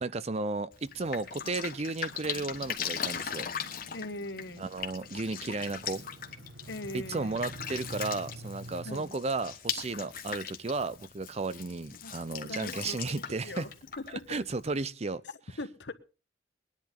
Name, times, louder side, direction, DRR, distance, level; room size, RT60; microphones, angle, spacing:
voice 1, 0.0-3.5 4.6-6.1 6.9-13.7 14.3-15.2, right 3 dB, 35° right, 0.6 m, -34 dB
Drip, 0.7-14.8, left 8 dB, 55° left, 1.3 m, -40 dB
sound 1, 2.2-9.0, right 1 dB, 75° right, 1.2 m, -48 dB
voice 2, 3.9-4.7 6.7-7.4 8.8-9.2 12.0-12.1 12.4-13.7 14.0-14.4 15.6-15.9, left 2 dB, 75° left, 1.2 m, -41 dB
21.5 x 10.5 x 3.8 m
head